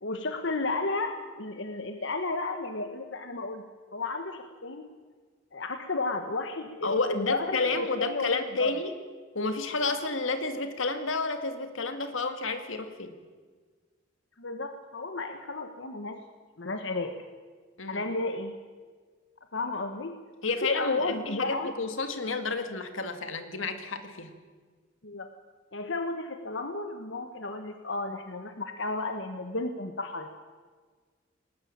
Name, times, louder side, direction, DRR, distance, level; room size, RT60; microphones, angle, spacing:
voice 1, 0.0-3.6 3.9-4.9 5.5-8.8 14.4-16.2 16.6-17.2 17.9-18.5 19.5-20.2 20.6-21.7 25.0-25.3 25.7-30.3, left 3 dB, 65° left, 7 dB, 1.4 m, -33 dB
voice 2, 6.8-8.9 9.3-13.2 17.8-18.0 20.4-24.3, left 3 dB, 85° left, 8 dB, 2.2 m, -31 dB
20.0 x 19.0 x 8.7 m, 1.5 s
head